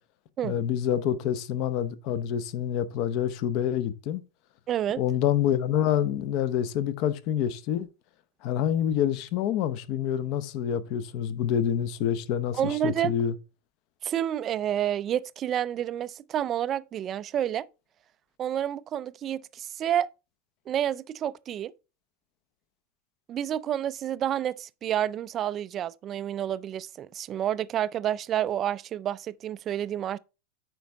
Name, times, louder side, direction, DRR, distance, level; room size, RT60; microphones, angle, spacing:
voice 1, 0.4-4.2 5.0-7.9 8.4-13.3, left 10 dB, 45° left, 0.7 m, -27 dB
voice 2, 4.7-5.0 12.5-13.2 14.0-17.7 18.4-20.1 20.7-21.7 23.3-30.2, right 10 dB, 25° right, 0.3 m, -29 dB
9.1 x 5.3 x 3.4 m
supercardioid pair, 165°, 0 cm